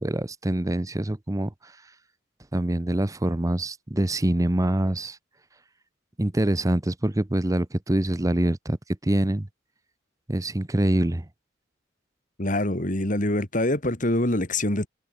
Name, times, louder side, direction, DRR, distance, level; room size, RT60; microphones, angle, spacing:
voice 1, 0.0-1.7 2.5-5.2 6.2-8.8 9.0-9.5 10.3-11.3, right 1 dB, 15° right, 0.7 m, -25 dB
voice 2, 12.4-14.9, left 1 dB, 40° left, 3.0 m, -25 dB
head